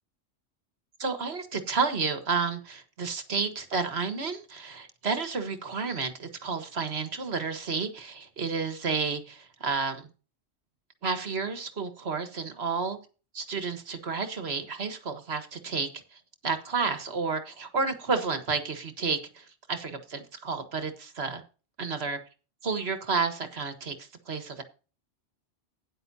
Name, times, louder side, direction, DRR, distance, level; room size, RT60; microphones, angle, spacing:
voice 1, 1.0-10.1 11.0-13.0 13.3-21.4 21.8-22.2 22.6-24.6, right 5 dB, 60° right, 8 dB, 1.7 m, -31 dB
13.0 x 10.0 x 2.8 m, 0.34 s
omnidirectional pair, 1.2 m